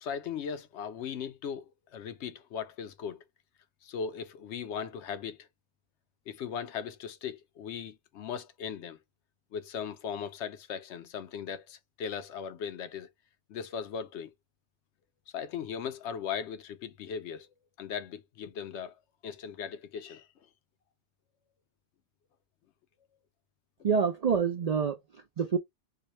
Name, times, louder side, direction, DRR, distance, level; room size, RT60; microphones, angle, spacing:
voice 1, 0.0-1.6 1.9-3.2 3.8-5.5 6.3-9.0 9.5-13.1 13.5-14.3 15.3-17.5 17.8-18.9 19.2-20.3, left 7 dB, 80° left, 0.9 m, -38 dB
voice 2, 23.8-25.6, right 6 dB, 60° right, 0.4 m, -27 dB
4.7 x 2.2 x 2.9 m
omnidirectional pair, 1.2 m